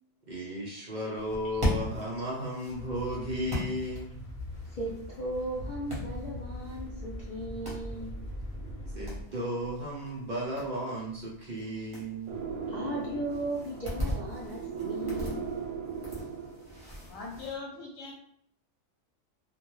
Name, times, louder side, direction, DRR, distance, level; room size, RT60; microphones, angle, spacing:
voice 1, 0.3-4.1 8.9-12.4, equal, 60° right, -4 dB, 0.5 m, -34 dB
sound 1, 1.2-17.6, equal, 20° right, 0.8 m, -40 dB
sound 2, 2.7-9.2, left 1 dB, 40° left, 0.9 m, -41 dB
voice 2, 4.7-8.1 12.7-15.4, right 1 dB, 70° left, -5 dB, 0.4 m, -36 dB
sound 3, 12.3-16.9, right 6 dB, 90° right, 1.0 m, -38 dB
voice 3, 17.0-18.1, left 4 dB, 90° left, -1 dB, 1.0 m, -40 dB
2.2 x 2.2 x 3.0 m, 0.67 s
omnidirectional pair, 1.4 m